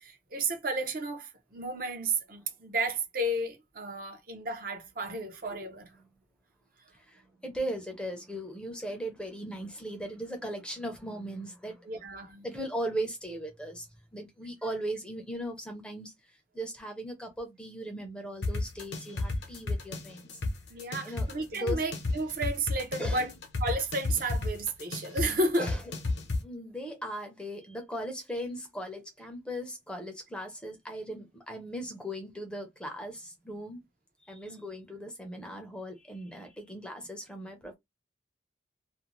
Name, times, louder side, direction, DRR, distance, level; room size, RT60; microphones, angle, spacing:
voice 1, 0.0-5.9 11.9-12.4 20.7-23.3 23.6-25.7 34.5-34.6, right 2 dB, 50° right, 0.6 m, -32 dB
voice 2, 6.9-11.9 12.4-20.4 21.0-21.3 21.5-21.8 23.0-23.3 25.6-25.8 26.4-33.8 34.2-37.7, right 1 dB, 5° left, 0.5 m, -38 dB
sound 1, 18.4-26.4, left 2 dB, 70° left, 0.8 m, -32 dB
2.5 x 2.1 x 3.0 m
head